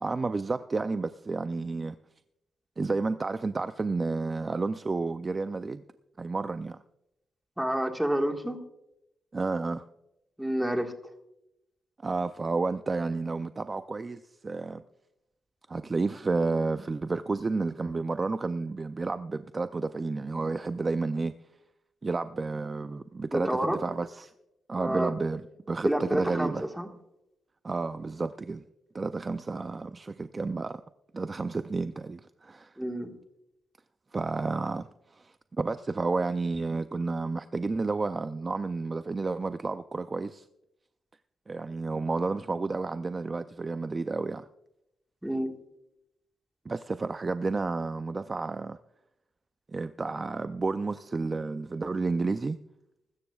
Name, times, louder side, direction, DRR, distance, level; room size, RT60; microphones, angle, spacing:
voice 1, 0.0-2.0 2.8-5.8 6.2-6.8 9.3-9.9 12.0-14.8 15.7-21.3 22.0-24.3 24.7-26.7 27.6-28.6 28.9-30.8 31.1-32.8 34.1-40.5 41.5-44.5 46.7-48.8 49.7-52.6, right 3 dB, 25° right, 0.4 m, -31 dB
voice 2, 7.6-8.6 10.4-10.9 23.3-23.8 24.7-25.1 25.8-26.5 26.8-26.9 32.8-33.1 45.2-45.5, equal, 5° right, 1.6 m, -28 dB
22.0 x 13.0 x 2.4 m
cardioid pair, 115°, 0 cm